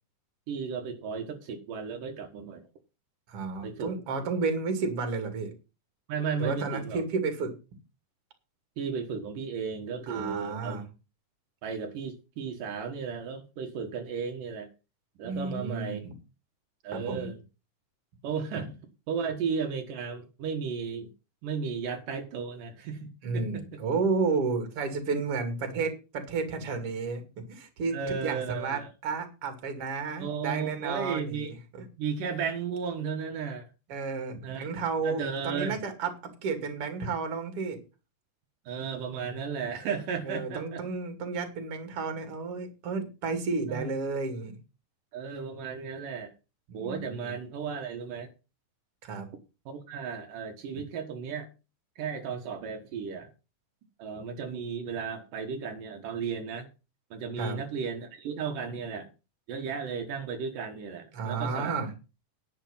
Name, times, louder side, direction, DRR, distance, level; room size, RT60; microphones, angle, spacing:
voice 1, 0.5-2.6 3.6-3.9 6.1-7.0 8.8-10.8 11.6-14.7 15.2-16.0 16.8-17.4 18.2-18.7 19.1-21.1 21.4-23.6 27.9-28.9 30.2-31.5 32.0-33.7 34.4-34.7 35.0-35.8 38.7-40.9 43.7-43.9 45.1-46.3 46.7-48.3 49.7-51.5 52.0-53.3 54.0-56.7 57.1-59.1 59.5-61.8, right 6 dB, 75° right, 4 dB, 3.1 m, -34 dB
voice 2, 3.3-5.5 6.4-7.5 10.1-10.8 15.2-16.1 16.9-17.3 23.2-31.8 33.9-36.1 36.4-37.8 40.2-44.6 46.7-47.3 49.0-49.3 54.1-54.2 57.4-57.6 61.1-61.9, right 4 dB, 45° right, 7 dB, 3.1 m, -32 dB
11.0 x 8.8 x 5.6 m, 0.30 s
omnidirectional pair, 3.8 m